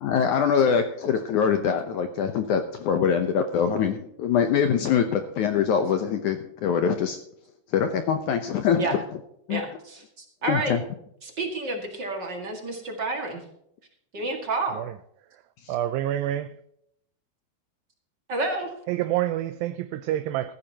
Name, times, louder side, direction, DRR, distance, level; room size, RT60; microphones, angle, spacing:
voice 1, 0.0-7.2 7.7-8.9 9.5-9.6 10.5-10.8 15.6-15.7, left 7 dB, 75° left, 1.8 m, -23 dB
voice 2, 10.4-10.7 11.2-13.4 14.1-14.8 18.3-18.7, right 2 dB, 40° right, 1.8 m, -29 dB
voice 3, 15.7-16.5 18.9-20.5, right 13 dB, 80° right, 2.2 m, -27 dB
15.0 x 14.0 x 2.9 m
omnidirectional pair, 4.5 m